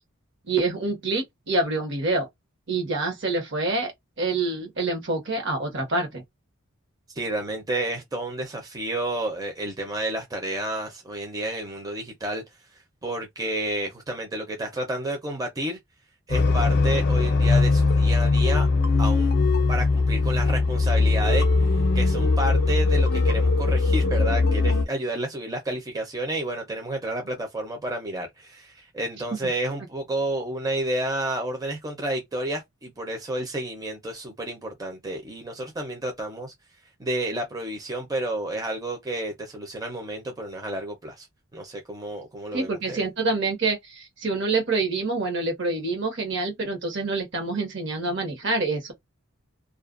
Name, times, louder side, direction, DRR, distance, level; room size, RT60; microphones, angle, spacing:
voice 1, 0.5-2.3 2.7-3.9 4.2-6.2 42.5-48.9, right 3 dB, 60° right, 1.1 m, -26 dB
voice 2, 7.1-12.4 13.0-15.8 16.3-18.7 19.0-19.3 19.7-21.7 21.9-36.5 37.0-41.3 41.5-43.0, right 1 dB, 20° right, 0.6 m, -30 dB
sound 1, 16.3-24.8, left 3 dB, 50° left, 0.5 m, -20 dB
2.4 x 2.1 x 2.5 m
head